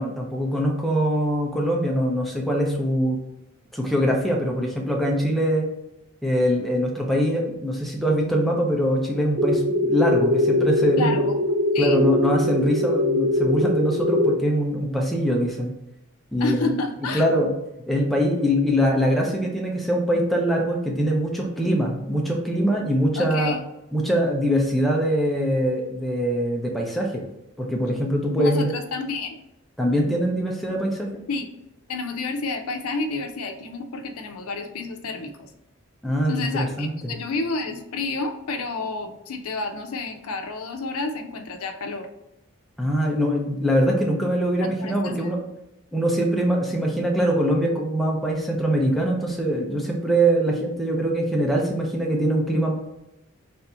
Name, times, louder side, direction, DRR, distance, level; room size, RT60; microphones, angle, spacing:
voice 1, 0.0-3.2 3.7-5.7 6.2-11.2 11.8-15.7 16.3-16.7 17.1-17.5 17.9-23.6 23.9-27.2 27.6-28.7 29.8-31.1 36.0-37.1 42.8-45.4 45.9-52.7, equal, ahead, -1 dB, 0.6 m, -23 dB
sound 1, 9.4-14.4, left 1 dB, 45° right, 0.3 m, -22 dB
voice 2, 11.0-11.4 11.7-12.0 16.4-17.3 23.2-23.6 28.4-29.4 31.3-31.5 31.9-35.5 36.3-42.1 44.8-45.3, left 3 dB, 85° left, 6 dB, 0.6 m, -30 dB
3.5 x 2.7 x 4.2 m, 0.87 s
head